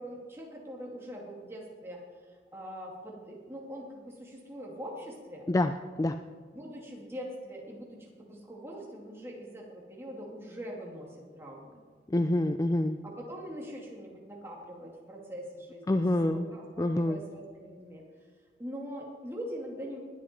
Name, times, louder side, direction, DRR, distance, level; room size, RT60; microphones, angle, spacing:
voice 1, 0.0-5.5 6.5-11.8 13.0-16.0 16.3-18.0 18.6-20.0, equal, 15° right, -2 dB, 2.5 m, -43 dB
voice 2, 12.1-13.0 15.9-16.5 16.8-17.2, left 1 dB, 20° left, 8 dB, 0.3 m, -26 dB
19.5 x 8.3 x 4.5 m, 1.5 s
head